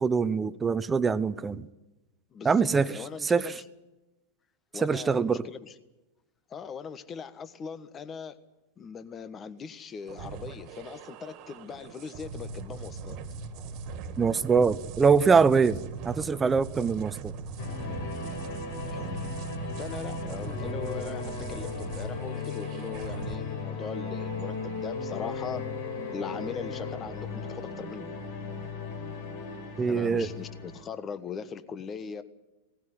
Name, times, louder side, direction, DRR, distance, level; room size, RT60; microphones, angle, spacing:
voice 1, 0.0-1.7 2.4-2.9 3.2-3.5 4.8-5.4 14.2-17.3 29.8-30.3, right 5 dB, 20° right, 14 dB, 0.9 m, -24 dB
voice 2, 2.3-3.6 4.7-5.7 6.5-8.4 8.8-13.2 18.9-19.3 19.8-25.7 26.1-28.1 29.9-32.2, left 6 dB, 30° left, 13 dB, 1.4 m, -40 dB
sound 1, 10.1-23.3, right 5 dB, 50° right, 2.0 m, -40 dB
sound 2, 17.6-30.8, left 4 dB, 65° left, 4.6 m, -36 dB
18.5 x 15.5 x 9.7 m, 1.1 s
hypercardioid pair, 100°, 0 cm